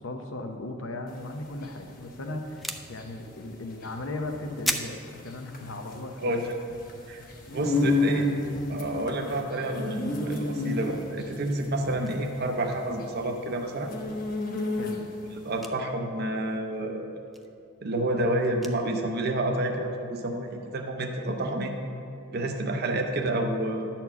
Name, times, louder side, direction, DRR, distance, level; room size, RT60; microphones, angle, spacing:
voice 1, 0.0-6.4 7.6-7.8 14.8-15.0, left 2 dB, 70° left, 5 dB, 0.7 m, -37 dB
sound 1, 1.1-15.3, left 2 dB, 45° left, 1.0 m, -31 dB
sound 2, 2.5-9.6 10.0-10.9 11.2-11.5 11.7-12.2 12.5-12.6 13.0-13.2 13.5-19.2 19.6-19.7 20.1-20.2 20.5-21.3, equal, ahead, 0.3 m, -40 dB
voice 2, 6.2-6.5 7.1-7.2 7.5-8.3 8.7-13.9 15.4-17.0 17.8-21.8 22.3-23.9, right 1 dB, 50° right, 3 dB, 0.7 m, -29 dB
10.5 x 4.4 x 7.0 m, 2.5 s
head